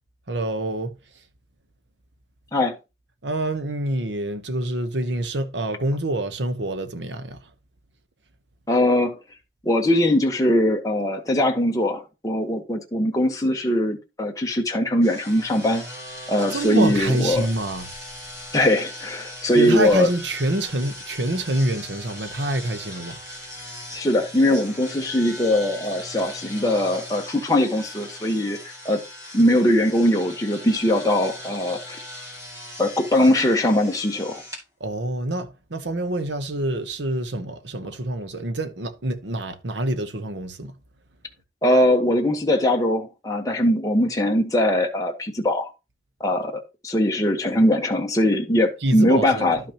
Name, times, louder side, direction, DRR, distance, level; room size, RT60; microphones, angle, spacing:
voice 1, 0.3-0.9 3.2-7.5 16.5-17.9 19.5-23.2 34.8-40.7 48.8-49.6, right 1 dB, 90° right, 1.0 m, -26 dB
voice 2, 8.7-9.2 9.6-15.8 16.3-17.5 18.5-20.1 23.9-29.0 29.3-32.0 32.8-34.4 41.6-45.7 46.2-49.6, left 1 dB, 20° left, 1.2 m, -21 dB
sound 1, 15.0-34.6, left 1 dB, 20° right, 2.3 m, -39 dB
11.5 x 5.8 x 2.9 m
head